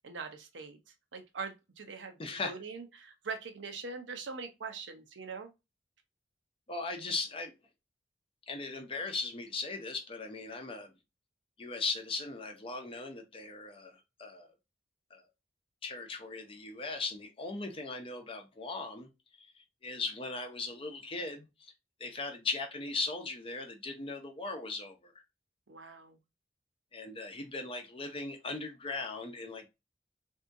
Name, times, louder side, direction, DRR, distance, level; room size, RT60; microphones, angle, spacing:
voice 1, 0.0-0.8 1.1-5.5 25.7-26.2, right 4 dB, 85° right, 0.7 m, -42 dB
voice 2, 2.2-2.5 6.7-7.5 8.5-10.9 11.6-14.5 15.1-15.2 15.8-19.1 19.4-21.7 22.0-25.1 26.9-29.7, left 3 dB, 30° left, 0.7 m, -38 dB
3.5 x 2.7 x 2.6 m
head